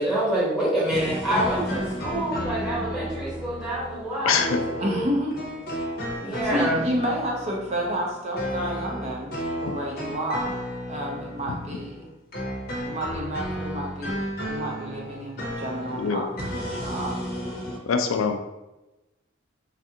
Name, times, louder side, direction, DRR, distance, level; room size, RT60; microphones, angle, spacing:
voice 1, 0.0-5.1 6.2-6.9, right 1 dB, 5° right, -8 dB, 1.1 m, -26 dB
sound 1, 0.9-12.1 12.3-17.8, equal, 50° left, 0.7 m, -33 dB
voice 2, 4.3-4.6 16.0-16.2 17.9-18.4, left 6 dB, 80° left, 6 dB, 0.3 m, -23 dB
voice 3, 4.8-5.3 6.4-10.6 10.9-12.1 12.8-14.2 14.5-17.2, equal, 35° right, -2 dB, 0.5 m, -30 dB
3.3 x 2.4 x 2.7 m, 1.0 s
head